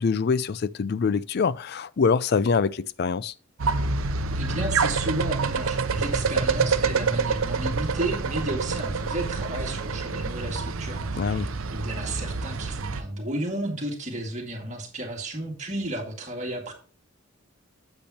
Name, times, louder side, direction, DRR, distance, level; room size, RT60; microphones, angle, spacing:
voice 1, 0.0-3.3 11.2-11.5, left 5 dB, 50° left, 0.4 m, -24 dB
sound 1, 3.6-13.0, right 4 dB, 85° right, 0.7 m, -27 dB
voice 2, 4.4-16.7, right 1 dB, 35° right, 2.0 m, -33 dB
8.5 x 8.2 x 2.9 m
head